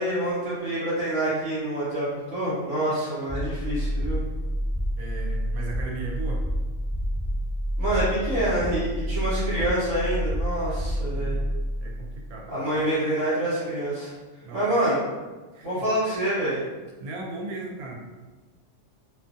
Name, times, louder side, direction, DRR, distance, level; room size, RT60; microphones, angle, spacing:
voice 1, 0.0-4.2 7.8-11.4 12.5-14.1 14.5-15.0 15.6-16.6, right 1 dB, 60° right, -11 dB, 1.2 m, -26 dB
sound 1, 3.3-12.4, equal, 30° right, 0.8 m, -29 dB
voice 2, 5.0-6.4 11.1-11.5 11.8-12.7 14.4-14.7 15.5-15.9 17.0-18.0, right 3 dB, 90° right, -1 dB, 1.1 m, -37 dB
2.6 x 2.4 x 2.5 m, 1.3 s
omnidirectional pair, 1.5 m